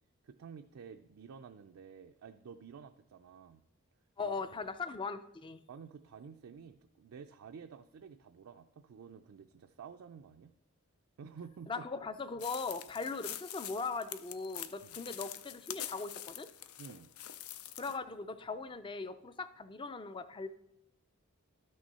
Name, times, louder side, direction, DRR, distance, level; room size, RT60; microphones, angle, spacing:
voice 1, 0.2-3.6 4.2-4.4 5.7-10.5 11.2-11.8 14.8-15.0 16.8-17.1, right 6 dB, 70° right, 6 dB, 0.4 m, -51 dB
voice 2, 4.2-5.6 11.7-16.5 17.8-20.5, left 4 dB, 20° left, 12 dB, 0.4 m, -39 dB
sound 1, 12.4-18.0, left 11 dB, 80° left, 0.5 m, -45 dB
12.5 x 6.3 x 4.1 m, 0.84 s
head